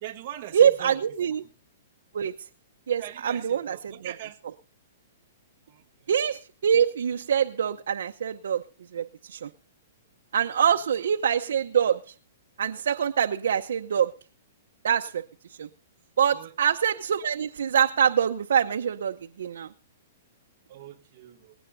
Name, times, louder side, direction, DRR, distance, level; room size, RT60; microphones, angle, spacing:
voice 1, 0.0-1.0 3.0-4.4 5.7-5.8 10.7-10.8 16.3-16.5 20.7-21.5, right 12 dB, 35° right, 3 dB, 1.4 m, -40 dB
voice 2, 0.5-1.4 2.1-2.3 2.9-4.1 6.1-8.6 8.9-9.5 10.3-12.0 12.6-14.1 14.8-15.2 15.6-15.7 16.2-19.7, right 8 dB, 75° right, 4 dB, 0.7 m, -24 dB
19.0 x 17.0 x 2.6 m, 0.37 s
hypercardioid pair, 175°, 0 cm